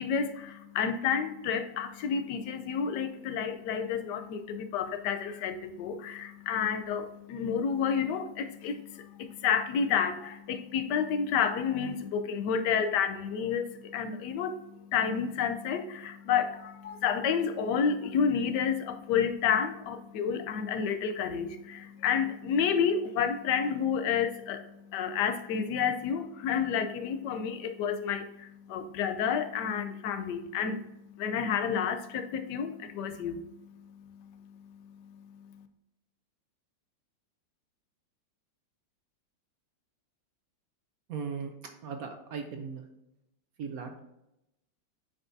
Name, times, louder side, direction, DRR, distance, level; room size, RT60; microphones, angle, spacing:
voice 1, 0.0-24.7 24.9-30.8 31.2-33.4, left 7 dB, 70° left, 8 dB, 1.3 m, -30 dB
voice 2, 41.1-41.5 41.8-42.8 43.6-43.9, right 5 dB, 60° right, 5 dB, 1.1 m, -37 dB
8.6 x 5.2 x 2.7 m, 0.88 s
omnidirectional pair, 2.0 m